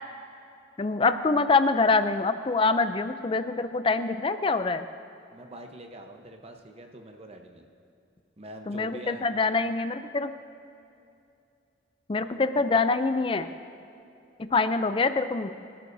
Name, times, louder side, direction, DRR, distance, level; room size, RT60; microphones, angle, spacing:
voice 1, 0.8-4.8 8.7-10.3 12.1-13.5 14.5-15.5, left 3 dB, 25° left, 10 dB, 0.4 m, -25 dB
voice 2, 5.3-7.7 8.4-9.3, right 1 dB, 30° right, 4 dB, 0.9 m, -44 dB
25.0 x 13.0 x 2.7 m, 2.7 s
head